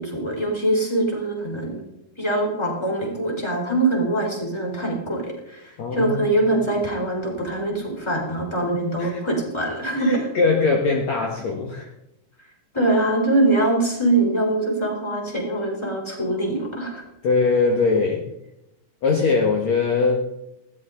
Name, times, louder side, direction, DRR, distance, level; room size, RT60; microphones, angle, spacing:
voice 1, 0.0-1.8 2.2-10.3 12.7-17.0, right 2 dB, 5° left, 0 dB, 3.7 m, -23 dB
voice 2, 5.8-6.1 9.0-9.2 10.0-11.9 17.2-18.2 19.0-20.3, left 4 dB, 55° left, 0 dB, 2.5 m, -21 dB
20.0 x 16.0 x 3.9 m, 0.87 s
omnidirectional pair, 4.1 m